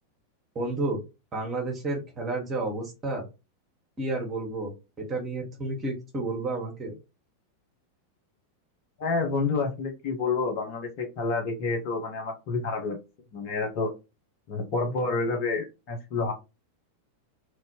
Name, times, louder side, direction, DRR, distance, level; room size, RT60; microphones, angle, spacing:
voice 1, 0.5-1.0 1.3-3.3 4.0-6.9, right 2 dB, 25° right, -1 dB, 1.3 m, -31 dB
voice 2, 9.0-13.0 13.3-13.9 14.5-16.3, left 4 dB, 45° left, 3 dB, 1.0 m, -29 dB
3.0 x 2.7 x 2.9 m, 0.27 s
figure-of-eight pair, 90°, 0 cm